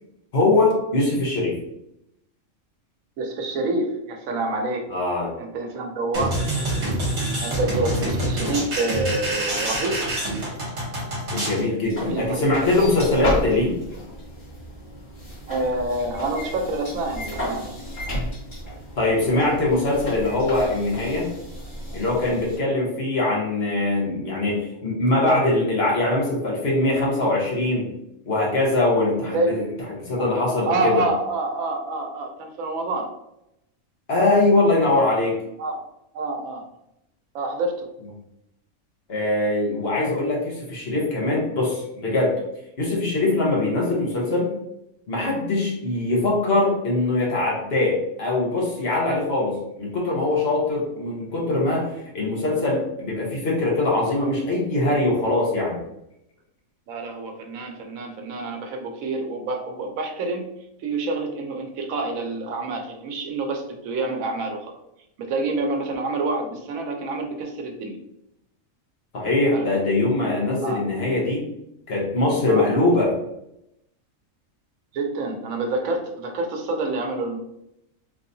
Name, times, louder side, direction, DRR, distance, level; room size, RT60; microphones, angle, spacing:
voice 1, 0.3-1.6 4.9-5.3 11.3-13.8 19.0-21.3 21.9-27.9 28.3-29.6 29.9-31.0 34.1-35.3 39.1-42.3 42.8-44.5 45.1-55.8 69.1-71.4 71.9-73.1, left 2 dB, 50° left, -3 dB, 1.1 m, -22 dB
voice 2, 3.2-4.9 5.4-6.7 7.4-10.1 12.0-12.4 15.5-17.8 29.3-29.6 30.6-33.1 35.0-35.1 35.6-35.8 36.1-36.7 37.3-37.9 56.9-64.7 65.2-68.0 69.5-69.8 70.6-70.8 72.5-72.8 74.9-77.4, right 2 dB, 85° right, 3 dB, 1.1 m, -27 dB
sound 1, 6.1-11.6, right 1 dB, 60° right, 1.3 m, -26 dB
sound 2, 11.8-22.6, equal, 35° left, 1.6 m, -33 dB
3.4 x 2.7 x 2.6 m, 0.82 s
omnidirectional pair, 1.4 m